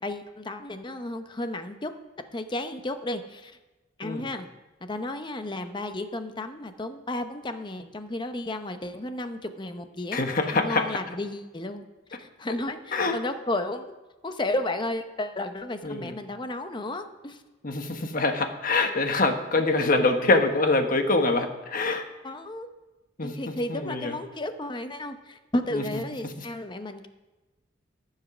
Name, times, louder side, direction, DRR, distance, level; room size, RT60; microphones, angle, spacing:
voice 1, 0.0-1.9 2.3-3.6 4.0-4.5 4.8-11.8 12.2-13.9 14.2-17.4 22.2-22.7 23.2-27.1, left 1 dB, 25° left, 8 dB, 0.8 m, -33 dB
voice 2, 10.1-11.0 12.9-13.1 15.8-16.2 17.6-22.1 23.2-24.2 25.7-26.4, left 3 dB, 45° left, 6 dB, 1.2 m, -25 dB
14.0 x 7.4 x 6.1 m, 1.1 s
head